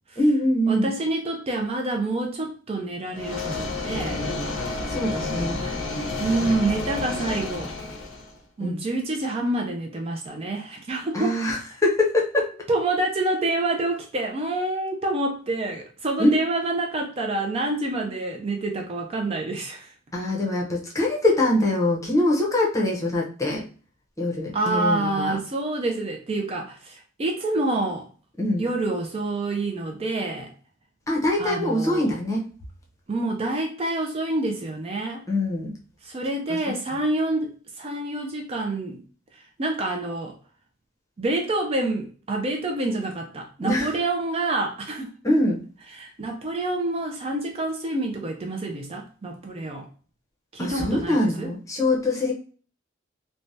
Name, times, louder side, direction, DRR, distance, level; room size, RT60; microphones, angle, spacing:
voice 1, 0.2-0.9 4.9-5.6 8.6-8.8 11.1-12.5 16.2-16.3 20.1-23.7 24.2-25.4 28.4-28.6 31.1-32.5 35.3-35.8 36.5-36.6 43.6-43.9 45.2-45.6 50.6-52.3, left 1 dB, 15° left, -2 dB, 0.7 m, -23 dB
voice 2, 0.7-4.2 5.6-5.8 6.2-7.7 8.6-11.4 12.7-19.9 24.5-28.1 28.6-30.5 31.4-32.2 33.1-35.2 36.0-37.5 37.8-39.0 39.3-40.3 41.2-45.1 46.0-49.9 50.5-51.5, right 2 dB, 30° right, 2 dB, 0.4 m, -27 dB
sound 1, 3.1-8.3, left 2 dB, 70° left, 0.6 m, -30 dB
3.3 x 2.1 x 2.6 m, 0.41 s
head